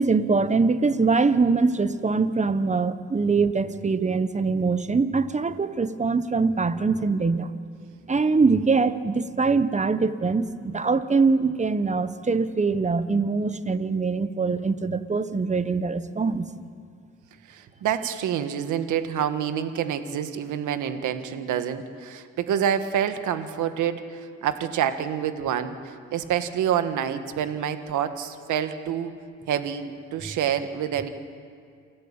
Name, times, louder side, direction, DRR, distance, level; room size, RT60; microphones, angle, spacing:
voice 1, 0.0-7.5 8.1-16.5, right 4 dB, 25° right, 13 dB, 1.1 m, -23 dB
voice 2, 17.5-29.1 29.5-31.1, right 9 dB, 80° right, 9 dB, 1.6 m, -27 dB
28.0 x 13.0 x 8.9 m, 2.3 s
cardioid pair, 90°, 30 cm